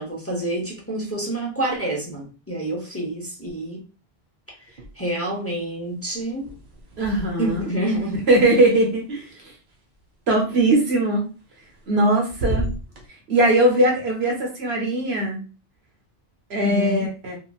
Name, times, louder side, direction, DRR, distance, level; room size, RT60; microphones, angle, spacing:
voice 1, 0.0-3.8 4.6-6.5 7.4-8.2 16.6-17.1, right 1 dB, 15° left, -3 dB, 0.7 m, -28 dB
sound 1, 4.7-5.4 5.7-9.8 11.4-12.0 12.3-13.1, right 2 dB, 55° right, 0.9 m, -34 dB
voice 2, 7.0-7.6 8.3-9.5 10.3-11.2 11.9-12.7 13.3-15.4 16.5-17.4, right 1 dB, 85° right, 0 dB, 1.2 m, -20 dB
2.9 x 2.5 x 2.3 m, 0.33 s
omnidirectional pair, 1.0 m